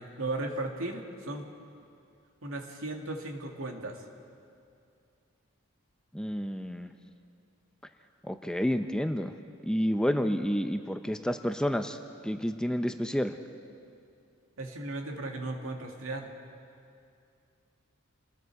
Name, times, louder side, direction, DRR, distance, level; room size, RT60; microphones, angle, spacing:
voice 1, 0.0-1.4 2.4-4.0 14.6-16.3, right 2 dB, 80° right, 2 dB, 2.2 m, -36 dB
voice 2, 6.1-6.9 8.2-9.3 9.6-13.3, equal, 5° left, 7 dB, 0.6 m, -30 dB
28.0 x 20.0 x 4.7 m, 2.5 s
head